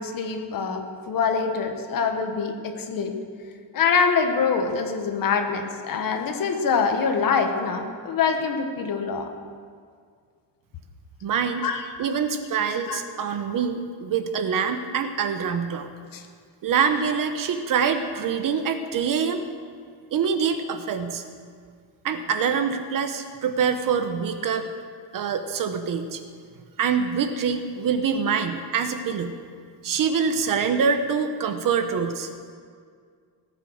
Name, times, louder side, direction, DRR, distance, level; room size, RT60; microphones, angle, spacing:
voice 1, 0.0-3.1 3.7-9.3 11.6-11.8 12.9-13.0 16.1-16.2, left 5 dB, 45° left, 5 dB, 1.6 m, -24 dB
voice 2, 11.2-11.6 12.0-15.9 16.6-19.4 20.1-21.2 22.0-24.7 25.1-26.2 26.8-29.3 29.8-32.3, right 6 dB, 45° right, 8 dB, 1.1 m, -25 dB
18.0 x 9.1 x 6.5 m, 2.1 s
cardioid pair, 160°, 45 cm